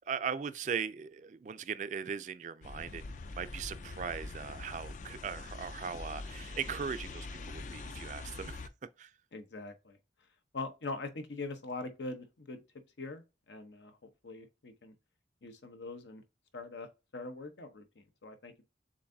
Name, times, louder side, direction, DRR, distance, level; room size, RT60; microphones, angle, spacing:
voice 1, 0.1-8.7 9.0-9.1, right 6 dB, 40° right, 0.3 m, -39 dB
sound 1, 2.6-8.7, left 3 dB, 45° left, 0.4 m, -44 dB
voice 2, 9.3-10.0 10.5-12.6 13.0-14.9 15.4-16.2 16.5-18.6, left 3 dB, 85° left, 0.9 m, -43 dB
7.0 x 2.6 x 2.6 m
head